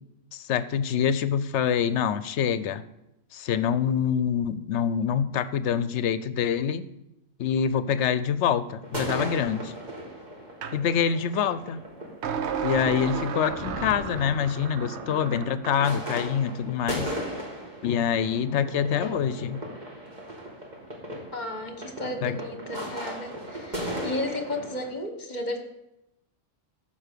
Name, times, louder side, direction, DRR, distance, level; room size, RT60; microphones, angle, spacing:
voice 1, 0.3-2.8 3.3-6.9 7.4-9.7 10.7-11.8 12.6-17.1 17.8-19.6 22.2-22.4, left 8 dB, 70° left, 14 dB, 0.9 m, -26 dB
sound 1, 8.8-24.9, equal, 35° right, 2.3 m, -37 dB
sound 2, 10.6-10.8 12.2-16.0, right 7 dB, 65° right, 1.0 m, -33 dB
sound 3, 13.4-15.0, left 1 dB, ahead, 4.9 m, -39 dB
voice 2, 21.3-25.6, left 1 dB, 35° left, 6 dB, 1.4 m, -33 dB
14.0 x 5.7 x 6.7 m, 0.89 s
omnidirectional pair, 1.3 m